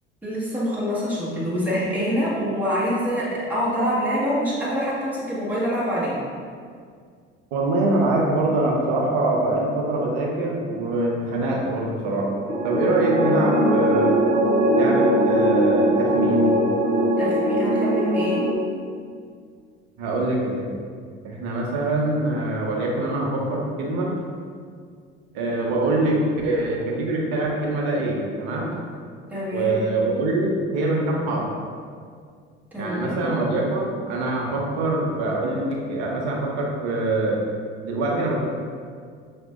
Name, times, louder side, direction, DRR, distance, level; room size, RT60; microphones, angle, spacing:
voice 1, 0.2-6.2 17.2-18.4 29.3-29.7 32.7-33.4, equal, 5° right, -9 dB, 1.4 m, -25 dB
voice 2, 7.5-12.3 12.6-14.2 14.7-16.5 20.0-20.7 21.2-24.1 25.3-28.7 29.5-31.5 32.8-37.4 37.8-38.4, right 2 dB, 65° right, -2 dB, 0.9 m, -24 dB
sound 1, 12.5-18.5, right 1 dB, 25° right, 0.5 m, -20 dB
5.8 x 2.6 x 2.4 m, 2.1 s
hypercardioid pair, 65°, 34 cm